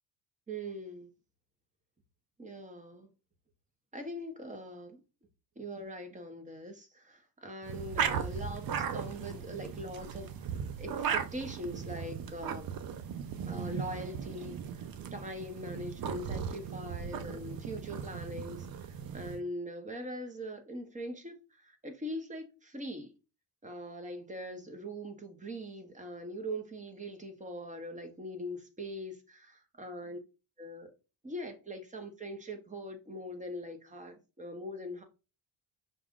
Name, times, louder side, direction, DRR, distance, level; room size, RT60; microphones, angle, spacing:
voice 1, 0.5-1.1 2.4-3.1 3.9-5.0 5.6-12.7 13.5-23.1 23.6-30.2 30.6-30.9 31.2-35.0, equal, 15° right, 1.1 m, -42 dB
sound 1, 7.6-19.4, right 7 dB, 55° right, 0.6 m, -37 dB
5.8 x 2.4 x 3.7 m
cardioid pair, 110°, 42 cm